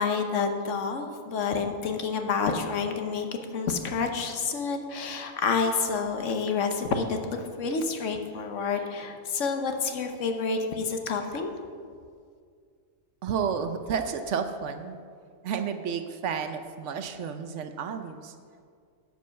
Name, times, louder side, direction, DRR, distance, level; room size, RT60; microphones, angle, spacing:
voice 1, 0.0-3.3 3.5-11.5, left 5 dB, 65° left, 5 dB, 1.2 m, -29 dB
voice 2, 13.2-15.0 15.4-18.3, right 6 dB, 65° right, 8 dB, 0.9 m, -31 dB
12.0 x 5.4 x 6.3 m, 2.1 s
omnidirectional pair, 1.4 m